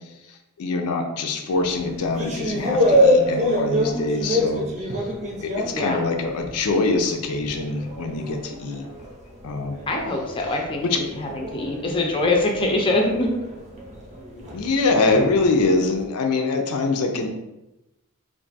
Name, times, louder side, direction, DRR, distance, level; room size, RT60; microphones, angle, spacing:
voice 1, 0.6-4.7 5.4-8.8 9.4-9.8 10.8-11.0 14.4-17.3, left 3 dB, 85° left, 4 dB, 0.5 m, -24 dB
sound 1, 1.5-6.7 7.0-16.0, left 1 dB, 30° right, 0.6 m, -26 dB
voice 2, 5.6-6.0 9.9-13.4, left 2 dB, 25° left, 1 dB, 0.4 m, -24 dB
2.5 x 2.4 x 3.9 m, 0.94 s
head